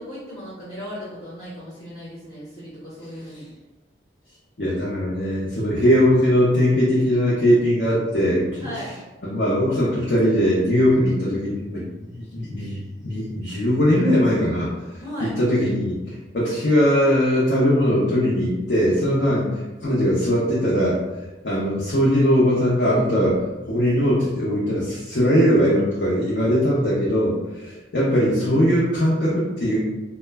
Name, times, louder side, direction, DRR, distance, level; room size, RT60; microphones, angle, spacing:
voice 1, 0.0-3.5 8.6-9.0 15.0-15.3 19.2-19.4 26.6-27.5, equal, 30° left, -10 dB, 0.7 m, -37 dB
voice 2, 4.6-8.5 9.2-14.7 15.2-19.5 19.8-21.0 21.4-23.4 23.7-27.3 27.6-29.8, equal, 65° left, -7 dB, 0.6 m, -20 dB
2.1 x 2.0 x 3.3 m, 1.1 s
head